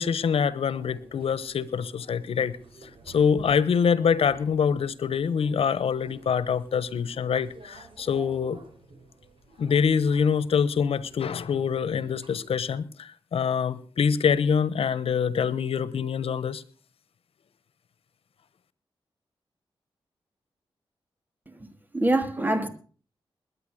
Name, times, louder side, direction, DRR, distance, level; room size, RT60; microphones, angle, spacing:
voice 1, 0.0-2.6 2.8-8.6 9.6-16.6, left 6 dB, 85° left, 1.1 m, -25 dB
sound 1, 0.7-12.8, right 3 dB, 65° right, 5.8 m, -52 dB
voice 2, 21.9-22.7, right 1 dB, 20° right, 2.7 m, -25 dB
21.0 x 9.3 x 6.5 m
wide cardioid pair, 90°, 10 cm